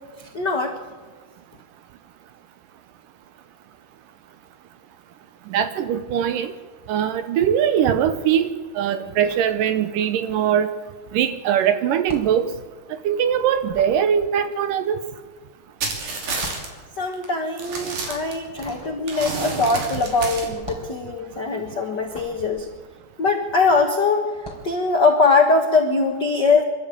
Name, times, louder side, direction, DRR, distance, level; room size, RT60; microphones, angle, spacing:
voice 1, 0.2-0.8 17.0-22.7 23.2-26.6, left 3 dB, 90° left, 3 dB, 0.9 m, -21 dB
voice 2, 5.5-6.5 6.9-8.5 8.8-10.7 11.1-12.5 13.0-15.0, right 9 dB, 75° right, 11 dB, 2.1 m, -21 dB
sound 1, 9.0-10.3 10.5-23.7 24.3-24.8, equal, 10° right, 4.3 m, -43 dB
sound 2, 15.8-16.7 17.1-17.3 17.6-18.7 19.1-20.5, right 3 dB, 55° right, 4.3 m, -29 dB
25.5 x 13.0 x 8.5 m, 1.5 s
omnidirectional pair, 4.5 m